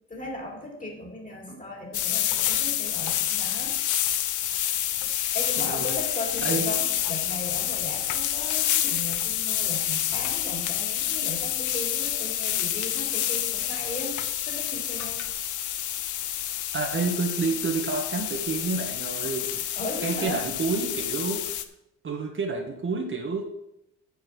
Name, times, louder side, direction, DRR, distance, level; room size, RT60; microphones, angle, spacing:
voice 1, 0.1-3.8 5.3-14.1 14.4-15.2 19.8-20.4, left 1 dB, 25° left, 0 dB, 4.0 m, -37 dB
sound 1, 1.9-21.6, left 11 dB, 75° left, 0.8 m, -28 dB
voice 2, 5.6-6.0 6.4-6.7 16.7-19.6 20.0-21.4 22.0-23.4, right 4 dB, 40° right, 2 dB, 1.6 m, -29 dB
8.3 x 6.8 x 6.3 m, 0.82 s
cardioid pair, 90°, 30 cm